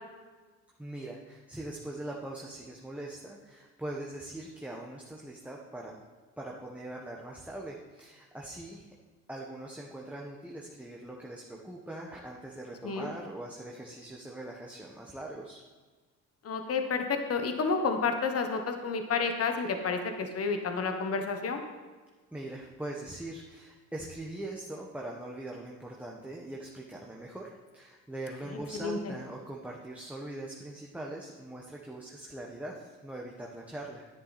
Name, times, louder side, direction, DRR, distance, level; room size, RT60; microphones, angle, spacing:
voice 1, 0.8-5.9 6.4-8.9 9.3-15.6 22.3-34.1, right 1 dB, 5° right, -2 dB, 1.3 m, -42 dB
voice 2, 16.4-21.6 28.8-29.1, left 4 dB, 50° left, 5 dB, 1.3 m, -30 dB
10.5 x 9.5 x 4.2 m, 1.4 s
cardioid pair, 90°, 30 cm